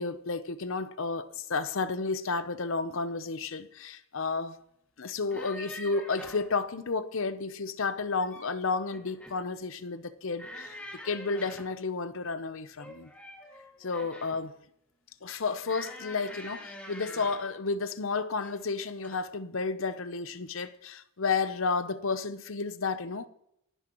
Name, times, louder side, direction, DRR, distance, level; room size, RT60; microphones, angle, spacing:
voice 1, 0.0-4.6 5.0-10.8 11.0-13.1 13.8-14.6 15.2-23.3, left 4 dB, 65° left, 0.8 m, -32 dB
sound 1, 5.2-6.5 8.0-8.6 8.9-9.4 10.4-11.8 12.8-14.5 15.6-17.5 18.4-18.7 19.0-19.2, left 1 dB, 5° left, 2.1 m, -46 dB
28.0 x 10.0 x 3.1 m
head